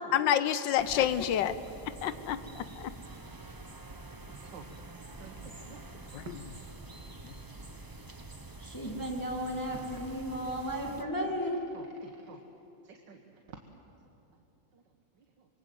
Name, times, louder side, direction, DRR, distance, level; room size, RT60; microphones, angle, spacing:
voice 1, 0.1-1.6 2.0-2.9 6.1-6.2 7.3-7.4, left 10 dB, 90° left, 12 dB, 1.5 m, -28 dB
sound 1, 0.8-11.0, right 2 dB, 15° right, 0.7 m, -47 dB
voice 2, 3.9-4.7 5.2-5.9 6.2-6.4 10.9-11.1 11.7-12.4 12.8-13.2 13.5-13.6 14.7-14.8 15.4-15.5, right 6 dB, 75° right, 3 dB, 2.0 m, -50 dB
voice 3, 8.6-11.6, equal, 10° left, 0 dB, 2.1 m, -34 dB
26.5 x 23.0 x 7.8 m, 2.9 s
omnidirectional pair, 1.9 m